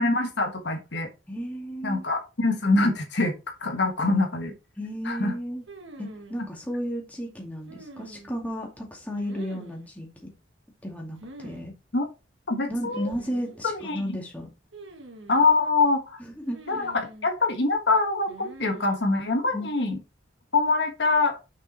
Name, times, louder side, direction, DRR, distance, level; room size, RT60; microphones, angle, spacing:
voice 1, 0.0-1.1 1.8-3.3 3.6-4.5 5.0-5.3 11.9-12.0 12.5-13.1 13.6-14.2 15.3-16.2 16.7-16.9 17.2-20.0 20.5-21.3, left 3 dB, 60° left, 1.4 m, -24 dB
voice 2, 1.3-2.0 4.8-5.6 6.0-10.3 10.8-11.7 12.7-14.5 16.2-16.9 19.5-19.7, equal, 10° left, 2.2 m, -33 dB
sound 1, 5.7-6.4 7.7-8.5 9.2-9.9 11.2-11.6 11.9-12.0 12.9-13.6 14.7-15.5 16.5-17.3 18.3-19.0, right 2 dB, 75° right, 1.8 m, -45 dB
6.6 x 5.7 x 4.2 m
head